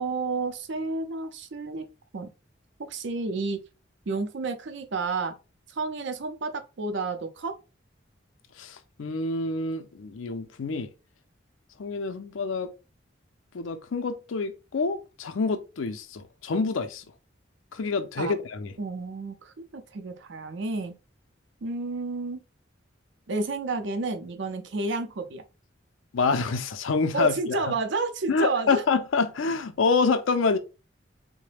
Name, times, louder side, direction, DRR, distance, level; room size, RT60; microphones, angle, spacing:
voice 1, 0.0-1.9 2.1-2.3 2.8-3.6 4.1-5.4 5.7-7.6 18.2-18.3 18.8-20.9 21.6-22.4 23.3-25.4 27.1-28.8, right 3 dB, 65° right, 0.5 m, -31 dB
voice 2, 8.6-10.9 11.8-12.7 13.5-17.0 17.7-18.7 26.1-27.6 28.3-30.6, left 4 dB, 85° left, 0.5 m, -27 dB
3.8 x 2.1 x 3.2 m
head